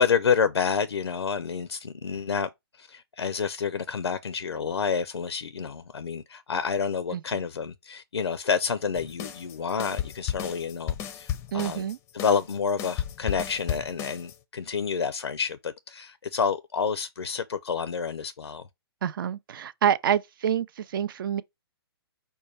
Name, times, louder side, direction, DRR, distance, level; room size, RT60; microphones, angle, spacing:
voice 1, 0.0-2.5 2.8-11.9 12.1-18.6, left 6 dB, 90° left, 0.4 m, -28 dB
sound 1, 8.9-14.4, left 10 dB, 20° left, 0.5 m, -34 dB
voice 2, 11.5-12.0 19.0-21.4, right 9 dB, 55° right, 0.4 m, -27 dB
5.3 x 2.2 x 4.2 m
hypercardioid pair, 135°, 13 cm